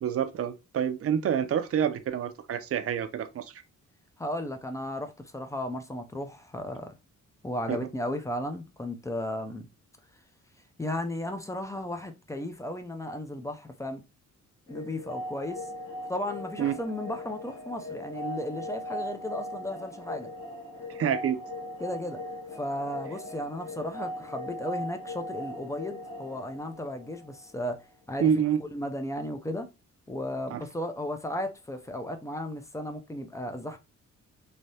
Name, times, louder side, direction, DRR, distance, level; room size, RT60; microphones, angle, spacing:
voice 1, 0.0-3.6 7.7-7.8 16.6-16.8 20.9-21.4 28.2-28.6 30.5-30.6, right 8 dB, 50° right, 0.4 m, -27 dB
voice 2, 4.2-6.9 7.4-9.7 10.8-14.0 14.7-15.7 16.1-20.3 21.8-22.2 22.5-28.3 28.6-29.7 30.1-33.8, left 1 dB, 10° left, 0.3 m, -35 dB
sound 1, 14.7-27.5, left 1 dB, 55° left, 1.4 m, -39 dB
3.3 x 2.6 x 2.6 m
wide cardioid pair, 150°, 30 cm